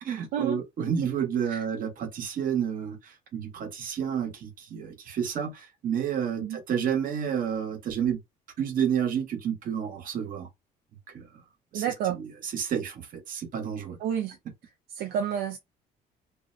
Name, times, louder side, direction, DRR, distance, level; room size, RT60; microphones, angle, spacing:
voice 1, 0.0-8.2 8.6-10.5 11.1-11.3 11.7-11.8 12.1-14.0, right 8 dB, 55° right, 0.9 m, -30 dB
voice 2, 11.7-12.2 14.0-14.4 14.9-15.6, right 9 dB, 75° right, 0.5 m, -29 dB
2.5 x 2.0 x 2.6 m
cardioid pair, 110°, 17 cm